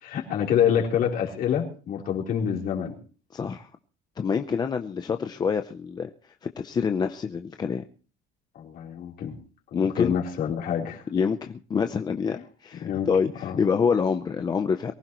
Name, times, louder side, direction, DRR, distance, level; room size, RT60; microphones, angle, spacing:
voice 1, 0.0-2.9 8.6-9.4 9.7-11.0 12.8-13.1 13.4-13.6, left 8 dB, 50° left, 0 dB, 3.8 m, -26 dB
voice 2, 3.3-3.7 4.2-6.1 6.6-7.8 9.7-10.1 11.1-14.9, left 6 dB, 20° left, 7 dB, 0.6 m, -26 dB
23.0 x 15.5 x 3.0 m, 0.38 s
cardioid pair, 180°, 19 cm